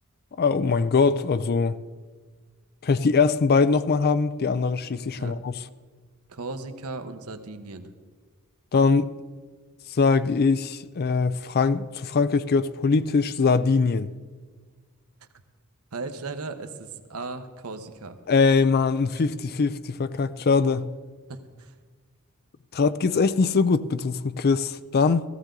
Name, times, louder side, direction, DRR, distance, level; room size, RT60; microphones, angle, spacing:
voice 1, 0.4-1.8 2.8-5.5 8.7-9.1 10.0-14.1 18.3-20.9 22.7-25.3, left 4 dB, 45° left, 0.4 m, -22 dB
voice 2, 6.3-7.9 15.9-18.2 21.3-21.7, right 3 dB, 75° right, 1.0 m, -36 dB
16.0 x 14.5 x 3.8 m
head